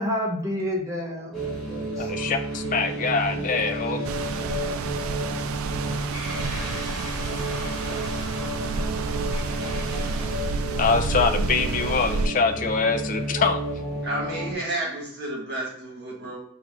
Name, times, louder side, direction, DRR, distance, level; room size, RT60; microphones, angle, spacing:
voice 1, 0.0-2.3, left 1 dB, 15° right, -3 dB, 0.9 m, -30 dB
sound 1, 1.3-14.5, right 1 dB, 5° left, 1.2 m, -31 dB
voice 2, 2.0-4.1 10.8-13.6, left 4 dB, 35° left, 8 dB, 0.3 m, -24 dB
sound 2, 4.0-12.3, right 4 dB, 65° right, 0.3 m, -30 dB
voice 3, 14.0-16.4, right 1 dB, 50° right, -4 dB, 1.6 m, -31 dB
4.3 x 2.5 x 3.5 m, 0.68 s
head